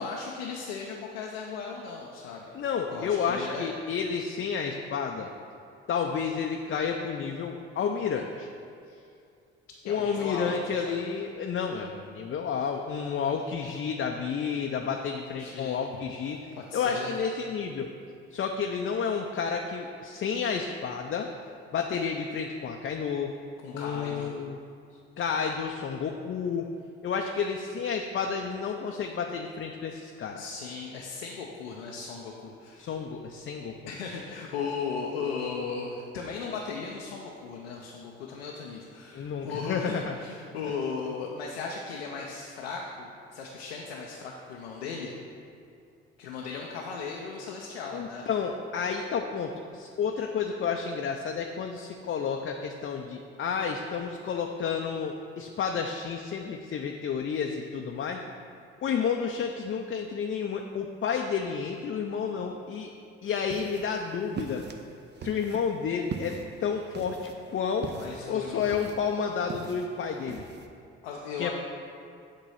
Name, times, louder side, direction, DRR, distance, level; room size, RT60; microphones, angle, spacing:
voice 1, 0.0-2.6 2.9-3.7 8.9-9.1 9.8-11.0 15.4-15.8 16.5-17.1 23.6-24.3 30.3-33.0 33.9-45.1 46.2-48.3 67.9-68.6 71.0-71.5, left 5 dB, 85° left, -1 dB, 0.6 m, -37 dB
voice 2, 2.5-5.3 5.9-8.5 9.9-16.4 16.7-17.9 18.3-21.3 21.7-23.3 23.7-24.6 25.2-26.7 27.0-30.4 32.8-33.8 39.1-40.1 47.9-58.2 58.8-62.9 63.2-64.6 65.2-67.9 68.3-70.4 71.4-71.5, left 6 dB, 40° left, 2 dB, 0.5 m, -31 dB
sound 1, 63.3-70.7, right 5 dB, 35° right, 0.7 m, -42 dB
8.2 x 3.1 x 5.5 m, 2.4 s
hypercardioid pair, 50°, 30 cm